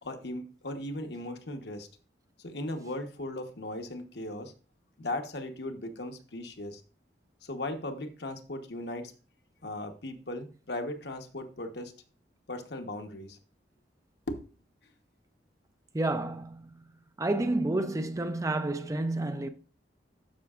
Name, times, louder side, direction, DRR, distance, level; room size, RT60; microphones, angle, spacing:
voice 1, 0.0-1.9 2.4-4.5 5.0-6.8 7.4-9.1 9.6-11.9 12.5-13.4 14.3-14.4, left 1 dB, 60° left, 1.0 m, -37 dB
voice 2, 15.9-16.9 17.2-19.5, right 2 dB, 15° right, 0.4 m, -30 dB
12.5 x 5.9 x 2.4 m
head